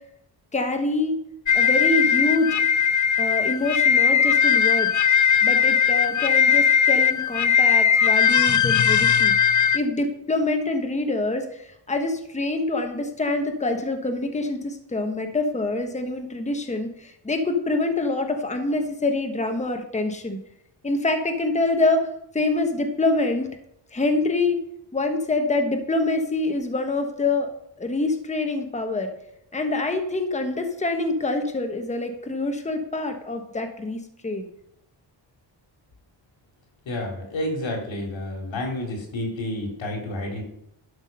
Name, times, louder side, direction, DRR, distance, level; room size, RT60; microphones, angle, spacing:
voice 1, 0.5-1.2 1.5-2.6 3.2-4.9 5.4-9.3 9.7-20.4 20.8-22.1 22.3-23.5 23.9-24.6 24.9-27.5 27.8-29.1 29.5-34.5, left 2 dB, 15° left, 5 dB, 1.2 m, -25 dB
sound 1, 1.5-9.8, left 7 dB, 40° left, 0.6 m, -19 dB
voice 2, 36.8-40.4, left 1 dB, 80° left, 1 dB, 3.3 m, -30 dB
12.0 x 6.1 x 5.4 m, 0.76 s
wide cardioid pair, 140°, 45 cm